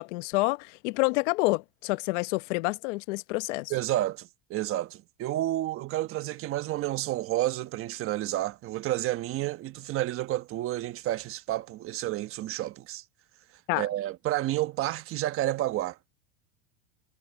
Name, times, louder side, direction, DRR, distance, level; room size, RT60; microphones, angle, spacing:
voice 1, 0.0-3.7 13.7-13.8, left 24 dB, 65° left, 1.0 m, -28 dB
voice 2, 3.7-13.0 13.7-16.0, right 15 dB, 35° right, 1.2 m, -30 dB
supercardioid pair, 140°, 39 cm